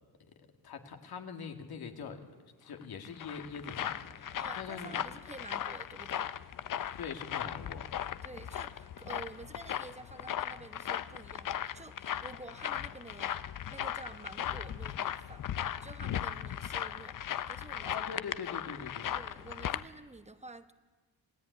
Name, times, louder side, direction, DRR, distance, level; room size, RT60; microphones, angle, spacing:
voice 1, 0.6-2.2 2.6-5.0 7.0-7.9 17.8-19.1, left 6 dB, 80° left, 5 dB, 2.2 m, -43 dB
sound 1, 2.8-19.8, left 10 dB, 60° left, 0.7 m, -38 dB
voice 2, 4.4-6.3 8.2-13.4 13.7-15.4 15.8-18.0 19.1-20.7, right 2 dB, 20° right, 10 dB, 1.0 m, -49 dB
27.5 x 16.5 x 9.5 m, 1.4 s
wide cardioid pair, 115°, 37 cm